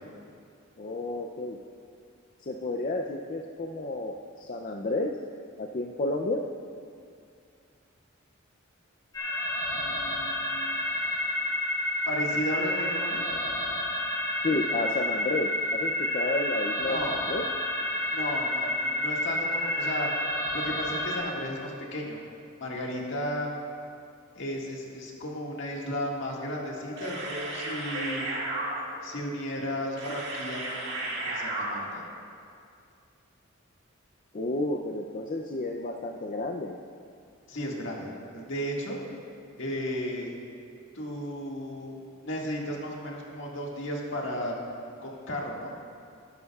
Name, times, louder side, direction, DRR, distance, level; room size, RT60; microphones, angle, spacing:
voice 1, 0.8-1.6 2.4-5.1 5.6-6.4 14.4-17.4 34.3-36.8, left 2 dB, 40° left, 2 dB, 0.5 m, -31 dB
sound 1, 9.1-21.2, left 1 dB, 20° left, 2.1 m, -30 dB
voice 2, 9.7-10.8 12.1-13.2 16.8-17.2 18.1-20.1 20.5-22.2 22.6-23.5 24.4-28.3 29.0-32.0 37.5-39.0 39.6-40.4 40.9-44.6 45.0-45.8, equal, 60° left, -2 dB, 1.9 m, -34 dB
sound 2, 26.8-32.1, right 2 dB, 55° right, 2.1 m, -34 dB
19.0 x 10.5 x 2.4 m, 2.4 s
head